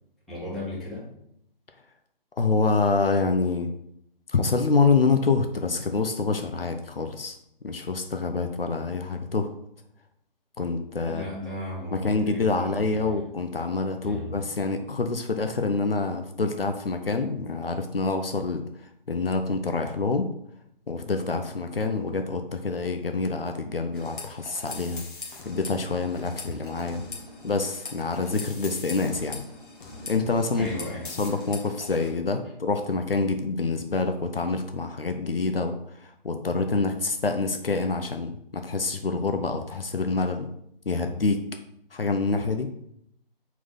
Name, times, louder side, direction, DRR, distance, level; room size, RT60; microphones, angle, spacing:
voice 1, 0.3-1.1 11.0-13.3 14.0-14.4 30.6-31.1, left 1 dB, ahead, -10 dB, 2.2 m, -36 dB
voice 2, 2.4-3.7 4.3-7.4 7.6-9.5 10.6-11.2 11.9-18.6 19.1-20.3 20.9-25.0 25.4-27.0 27.4-29.4 30.1-30.7 31.2-40.5 40.9-41.4 41.9-42.7, left 4 dB, 70° left, 6 dB, 0.8 m, -26 dB
sound 1, 23.9-32.1, left 3 dB, 55° left, 1.9 m, -41 dB
4.7 x 4.1 x 5.5 m, 0.74 s
figure-of-eight pair, 140°, 30 cm